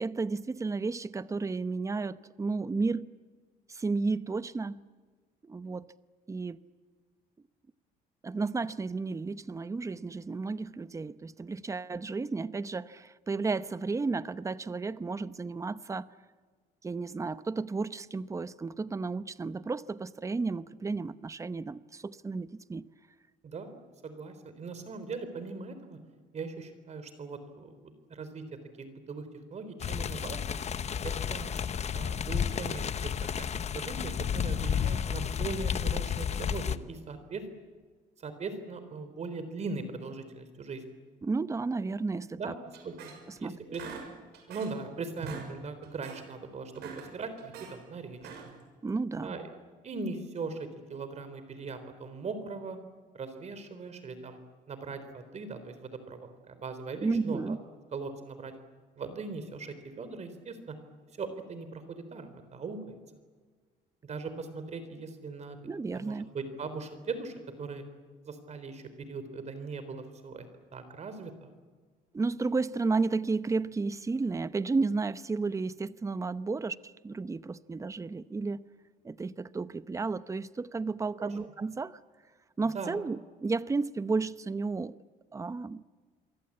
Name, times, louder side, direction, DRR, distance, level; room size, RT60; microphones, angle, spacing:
voice 1, 0.0-3.1 3.7-4.8 5.4-5.9 6.3-6.6 8.2-16.1 16.8-22.9 41.2-42.5 43.3-43.6 48.8-49.3 57.0-57.6 65.6-66.3 72.1-78.6 79.0-82.0 82.6-84.9 85.3-85.8, right 4 dB, 20° right, 0.8 m, -32 dB
voice 2, 24.0-26.0 26.3-28.4 28.8-30.6 31.0-31.5 31.9-37.4 38.2-40.8 42.4-42.6 42.8-43.1 43.4-43.8 44.5-48.2 49.2-49.5 49.8-52.8 53.1-54.4 54.7-57.6 57.9-58.5 59.0-60.8 61.1-63.0 64.0-65.6 65.9-67.8 68.2-70.5 70.7-71.5 81.2-81.3 82.7-82.9, right 4 dB, 40° right, 3.8 m, -40 dB
sound 1, 29.8-36.8, left 8 dB, 40° left, 1.0 m, -32 dB
sound 2, 42.7-43.4 43.7-44.8 45.1-45.5 45.8-46.2 46.6-47.7 48.1-48.6, right 6 dB, 80° right, 6.7 m, -44 dB
28.0 x 23.5 x 8.7 m
cardioid pair, 110°, 17 cm